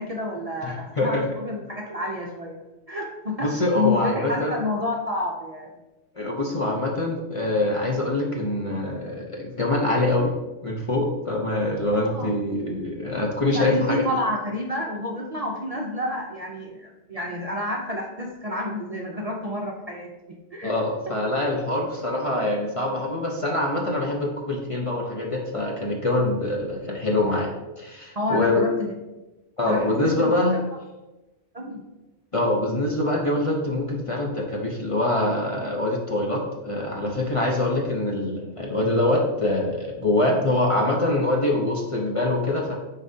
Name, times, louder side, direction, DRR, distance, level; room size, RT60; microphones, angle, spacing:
voice 1, 0.0-2.6 2.9-5.7 11.9-12.3 13.5-20.1 20.5-20.7 21.1-21.2 28.2-28.9 29.7-30.3 31.5-31.8, left 2 dB, 40° right, -1 dB, 0.6 m, -29 dB
voice 2, 0.6-1.2 3.4-4.5 6.1-10.3 10.6-14.0 20.6-27.5 27.8-28.6 29.6-30.6 32.3-42.7, left 1 dB, 30° left, -1 dB, 0.8 m, -24 dB
9.5 x 4.0 x 2.7 m, 1.1 s
omnidirectional pair, 1.2 m